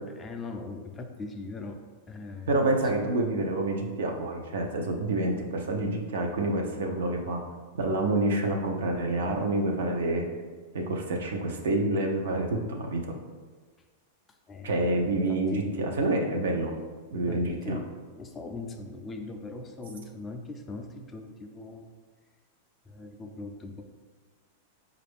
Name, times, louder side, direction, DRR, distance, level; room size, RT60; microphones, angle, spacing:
voice 1, 0.2-1.8 2.1-2.5 14.5-15.0 15.3-15.6 17.3-17.9 18.2-21.9 22.9-23.8, left 3 dB, 20° left, 4 dB, 0.3 m, -40 dB
voice 2, 2.5-7.4 7.8-10.3 10.7-13.0 14.6-16.7 17.1-17.8, right 2 dB, 85° right, 2 dB, 0.6 m, -28 dB
4.4 x 2.4 x 3.4 m, 1.4 s
supercardioid pair, 140°, 0 cm